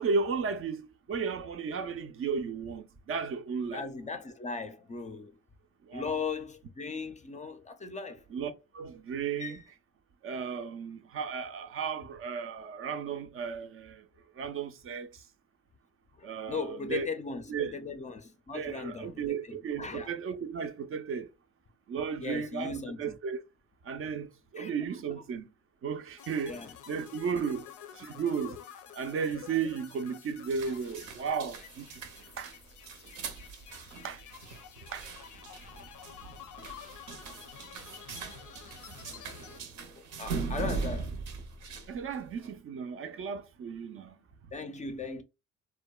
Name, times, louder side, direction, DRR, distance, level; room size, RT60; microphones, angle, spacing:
voice 1, 0.0-3.9 5.9-6.1 8.3-9.6 10.2-14.0 14.4-15.1 16.2-17.1 17.5-17.8 18.5-21.3 21.9-23.4 23.8-25.5 25.8-26.6 26.9-27.7 28.0-28.6 28.9-31.9 32.4-32.5 33.2-33.3 34.0-34.2 34.9-35.1 40.6-40.7 41.9-44.2, right 6 dB, 45° right, 0.4 m, -34 dB
voice 2, 3.7-5.4 5.9-8.2 9.4-9.6 16.2-20.1 22.2-23.2 24.6-25.2 26.4-27.0 39.9-41.1 44.5-45.2, left 4 dB, 25° left, 0.4 m, -38 dB
sound 1, 26.2-39.6, left 9 dB, 85° left, 0.5 m, -50 dB
sound 2, 30.5-42.5, right 4 dB, 80° right, 0.7 m, -40 dB
2.6 x 2.1 x 2.2 m
cardioid pair, 90°, 30 cm